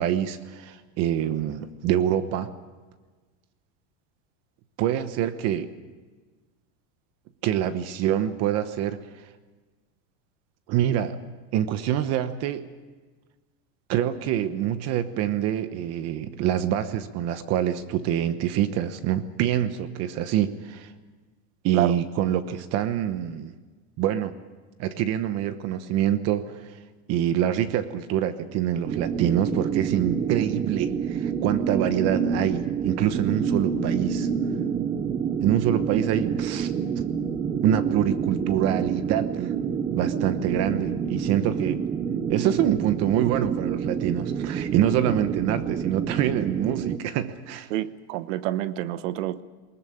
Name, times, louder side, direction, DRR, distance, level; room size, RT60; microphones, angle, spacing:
voice 1, 0.0-2.5 4.8-5.7 7.4-9.0 10.7-11.2 11.5-12.6 13.9-20.9 21.6-23.5 24.0-24.3 24.8-26.8 27.1-34.3 35.4-36.7 37.6-39.5 39.9-41.8 42.3-47.7, right 10 dB, 45° right, 11 dB, 1.1 m, -25 dB
sound 1, 28.8-47.0, right 7 dB, 20° right, 0.7 m, -28 dB
voice 2, 47.7-49.4, right 14 dB, 80° right, 15 dB, 1.1 m, -28 dB
21.0 x 19.5 x 8.7 m, 1.4 s
supercardioid pair, 155°, 37 cm